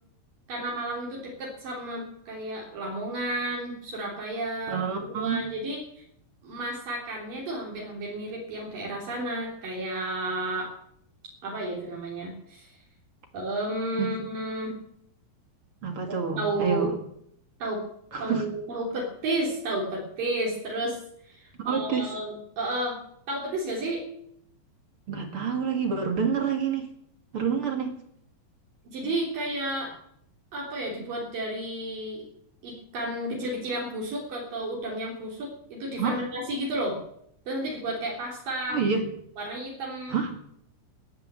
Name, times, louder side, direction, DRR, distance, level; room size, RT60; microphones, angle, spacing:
voice 1, 0.5-6.0 6.4-10.7 11.4-12.7 13.3-14.8 16.1-17.0 17.6-17.8 18.2-21.0 21.3-23.0 23.3-24.0 28.9-29.9 30.5-32.2 32.6-37.0 37.5-38.8 39.4-40.2, right 1 dB, 70° right, -3 dB, 5.0 m, -32 dB
voice 2, 4.7-5.4 14.0-14.1 15.8-16.9 18.1-18.4 21.6-22.1 25.1-26.9 27.3-27.9 36.0-36.2 38.7-39.1 40.1-40.3, right 6 dB, 45° right, 5 dB, 2.4 m, -27 dB
18.0 x 9.9 x 7.7 m, 0.70 s
omnidirectional pair, 4.1 m